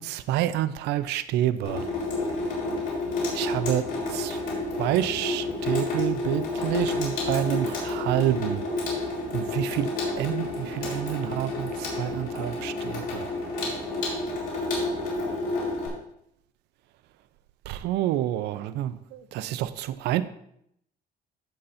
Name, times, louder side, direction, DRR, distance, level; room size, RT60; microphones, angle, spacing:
voice 1, 0.0-1.8 3.3-4.4 4.8-8.6 9.3-9.9 10.2-13.3 17.7-20.2, right 13 dB, 85° right, 13 dB, 0.5 m, -28 dB
Water tap faucet / Sink (filling or washing), 1.6-15.9, left 2 dB, 60° left, 3.8 m, -30 dB
15.5 x 5.6 x 2.6 m, 0.74 s
cardioid pair, 110°, 17 cm